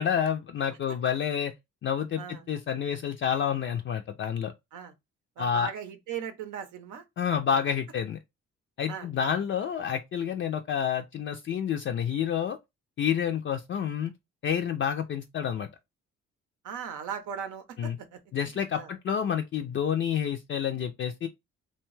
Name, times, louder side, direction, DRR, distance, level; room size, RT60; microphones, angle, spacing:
voice 1, 0.0-1.5 1.8-4.5 5.4-5.7 7.2-8.2 8.8-12.6 13.0-14.1 14.4-15.7 17.8-18.0 18.3-21.3, left 8 dB, 40° left, 0.4 m, -29 dB
voice 2, 2.2-2.5 4.7-4.9 5.4-7.0 7.3-7.6 8.9-9.1 16.6-18.2 18.5-18.9, right 8 dB, 80° right, 0.7 m, -38 dB
2.7 x 2.2 x 3.0 m
cardioid pair, 90°, 30 cm